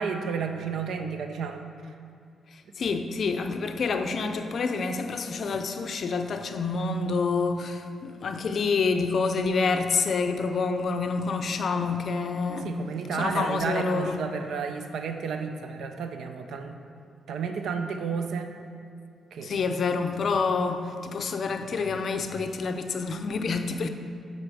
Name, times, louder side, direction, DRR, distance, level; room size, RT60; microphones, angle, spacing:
voice 1, 0.0-1.9 12.5-16.8 17.3-18.5 19.3-19.7, right 5 dB, 80° right, 6 dB, 0.5 m, -32 dB
voice 2, 2.5-12.7 13.2-14.2 19.4-23.9, left 4 dB, 55° left, 6 dB, 0.5 m, -27 dB
6.6 x 4.2 x 6.2 m, 2.4 s
cardioid pair, 100°, 0 cm